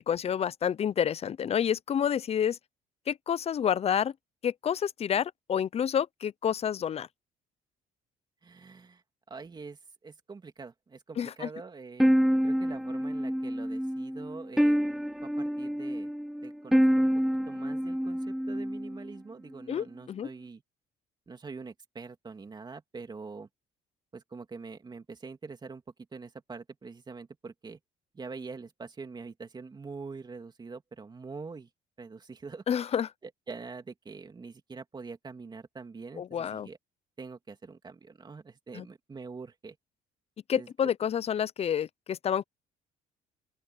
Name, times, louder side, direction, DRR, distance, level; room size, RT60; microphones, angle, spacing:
voice 1, 0.1-2.6 3.1-4.1 4.4-7.1 11.2-11.5 19.7-20.3 32.7-33.1 36.2-36.7 38.7-38.9 40.5-42.4, left 8 dB, 40° left, 0.6 m, -29 dB
voice 2, 8.4-9.0 9.3-12.2 12.4-16.1 16.4-17.1 17.5-20.6 21.3-23.5 24.1-25.8 26.1-27.8 28.1-31.7 32.0-32.6 33.5-36.8 37.2-39.8 40.5-40.9, right 4 dB, 25° right, 2.9 m, -44 dB
sound 1, 12.0-19.1, equal, ahead, 0.7 m, -27 dB
open air
cardioid pair, 110°, 17 cm